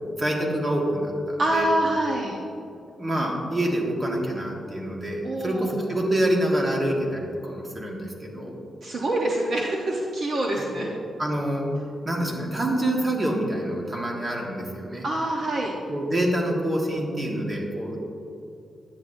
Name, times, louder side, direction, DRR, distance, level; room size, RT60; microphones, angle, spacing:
voice 1, 0.2-1.7 3.0-8.5 10.5-10.9 11.2-11.7 12.0-15.0 15.9-18.0, right 1 dB, 25° right, -1 dB, 1.4 m, -26 dB
voice 2, 1.4-2.4 5.2-5.7 8.8-10.9 15.0-15.7, right 1 dB, 50° right, -2 dB, 0.8 m, -25 dB
10.5 x 9.0 x 2.6 m, 2.7 s
wide cardioid pair, 125°, 0 cm